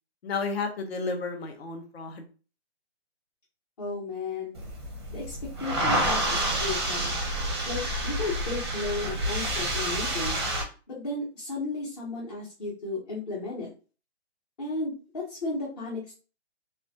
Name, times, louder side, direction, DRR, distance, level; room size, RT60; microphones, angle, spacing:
voice 1, 0.2-2.3, left 4 dB, 65° left, 5 dB, 0.8 m, -32 dB
voice 2, 3.8-4.6 5.1-7.1 7.6-10.4 10.9-13.7 14.6-16.1, left 2 dB, 35° left, -6 dB, 0.9 m, -34 dB
sound 1, 4.6-10.6, right 1 dB, 25° right, 0.5 m, -29 dB
3.3 x 2.4 x 2.7 m, 0.35 s
hypercardioid pair, 170°, 33 cm